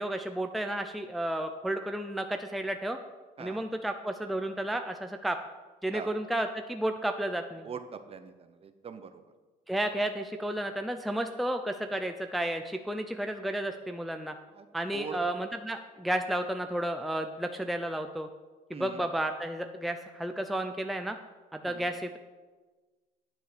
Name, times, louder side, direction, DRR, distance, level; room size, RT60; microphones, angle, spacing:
voice 1, 0.0-3.0 3.4-5.4 5.8-7.7 9.7-14.3 14.7-18.3 18.7-21.2 21.5-22.2, right 1 dB, ahead, 6 dB, 0.6 m, -32 dB
voice 2, 7.6-9.2 14.5-14.7 14.9-15.2 18.7-19.0 21.6-21.9, right 6 dB, 35° right, 9 dB, 1.0 m, -42 dB
9.7 x 7.9 x 6.0 m, 1.3 s
cardioid pair, 110°, 17 cm